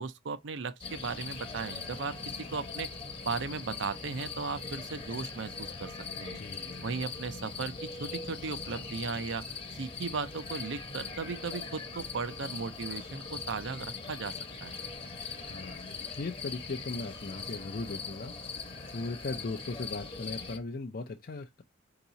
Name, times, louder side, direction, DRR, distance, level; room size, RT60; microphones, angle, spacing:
voice 1, 0.0-2.2 2.5-2.9 3.2-5.9 6.2-6.4 6.8-9.4 9.8-14.3 14.6-14.8, right 4 dB, 70° right, 0.6 m, -36 dB
sound 1, 0.8-20.6, left 4 dB, 30° left, 1.0 m, -41 dB
voice 2, 6.3-6.8 15.4-18.3 18.9-21.6, left 3 dB, 50° left, 0.5 m, -38 dB
4.6 x 2.9 x 3.9 m
head